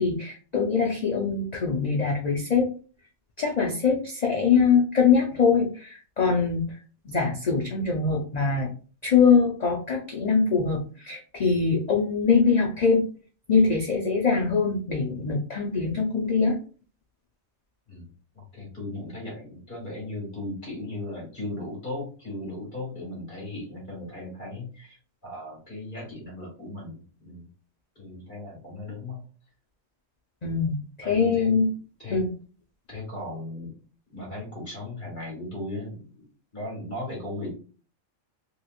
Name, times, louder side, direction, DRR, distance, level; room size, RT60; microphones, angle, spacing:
voice 1, 0.0-2.7 3.4-6.8 7.0-8.7 9.0-13.1 13.5-16.6 30.4-31.7 32.1-32.3, left 5 dB, 55° left, -1 dB, 0.4 m, -23 dB
voice 2, 18.3-25.0 25.2-27.4 28.0-29.2 31.0-31.6 32.0-32.2 32.9-33.7 34.1-36.3 36.5-37.5, left 1 dB, 40° left, -3 dB, 1.7 m, -37 dB
3.0 x 2.9 x 2.4 m, 0.38 s
omnidirectional pair, 1.3 m